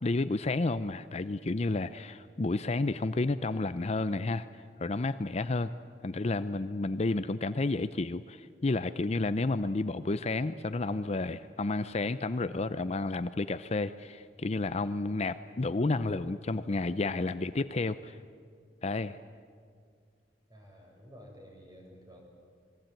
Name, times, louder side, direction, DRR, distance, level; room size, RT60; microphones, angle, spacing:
voice 1, 0.0-4.5 4.8-5.7 6.0-18.2 18.8-19.2, left 2 dB, 40° left, 12 dB, 0.6 m, -31 dB
voice 2, 20.5-22.2, equal, 20° right, 0 dB, 6.8 m, -52 dB
27.0 x 21.0 x 9.0 m, 2.1 s
head